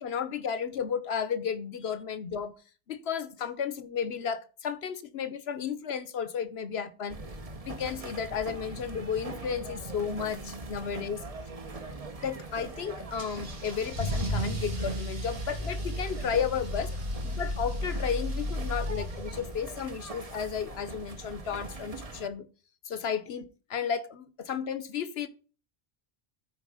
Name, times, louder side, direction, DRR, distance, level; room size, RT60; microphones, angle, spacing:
voice 1, 0.0-2.5 2.9-7.2 7.6-11.2 12.2-16.9 17.2-22.5 22.8-25.3, left 7 dB, 75° left, 1.2 m, -33 dB
sound 1, 7.1-22.3, right 2 dB, 35° right, 1.0 m, -41 dB
Car / Engine starting / Accelerating revving vroom, 13.2-19.7, equal, 65° right, 2.2 m, -34 dB
13.5 x 4.8 x 4.9 m
omnidirectional pair, 1.1 m